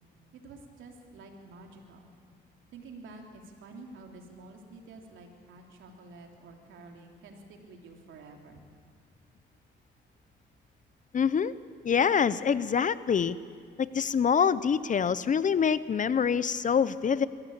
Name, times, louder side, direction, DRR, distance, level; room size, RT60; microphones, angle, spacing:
voice 1, 0.3-2.1 2.7-8.6, right 3 dB, 75° right, 2 dB, 3.3 m, -49 dB
voice 2, 11.1-11.5 11.8-13.4 13.8-17.3, left 7 dB, 40° left, 16 dB, 0.7 m, -25 dB
22.0 x 16.0 x 8.7 m, 2.1 s
cardioid pair, 90°, 20 cm